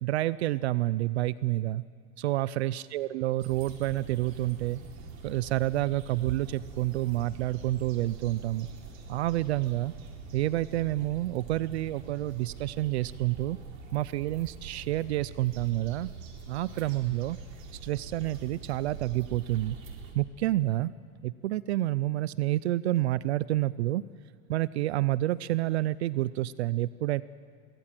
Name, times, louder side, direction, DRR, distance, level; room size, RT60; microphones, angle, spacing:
voice 1, 0.0-1.8 2.2-4.8 5.2-8.7 9.1-9.9 10.3-13.6 13.9-16.1 16.5-17.4 17.7-19.8 20.1-20.9 21.2-24.0 24.5-27.2, right 16 dB, 60° right, 18 dB, 0.5 m, -29 dB
sound 1, 3.4-20.1, right 4 dB, 90° right, 4.1 m, -45 dB
23.5 x 18.5 x 7.6 m, 2.2 s
supercardioid pair, 180°, 38 cm